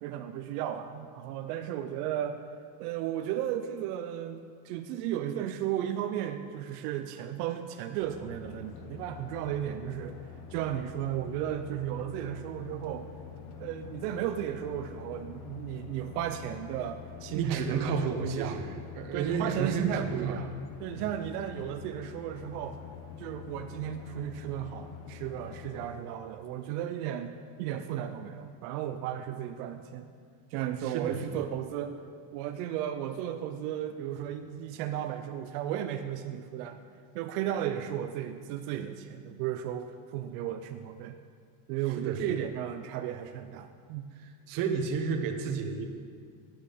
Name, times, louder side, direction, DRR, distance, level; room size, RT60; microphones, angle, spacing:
voice 1, 0.0-2.4 2.8-10.2 10.5-13.1 13.6-18.6 19.1-20.5 20.8-22.8 23.2-27.3 27.6-30.1 30.5-31.9 32.3-36.8 37.1-41.2 41.7-44.1, right 11 dB, 85° right, 7 dB, 0.7 m, -34 dB
sound 1, 8.0-25.9, left 8 dB, 65° left, 1.1 m, -46 dB
voice 2, 17.3-18.7 18.9-20.4 20.9-21.0 30.8-31.2 42.0-42.2 44.5-45.9, right 6 dB, 45° right, 4 dB, 1.1 m, -31 dB
9.6 x 8.8 x 5.1 m, 2.1 s
cardioid pair, 150°, 46 cm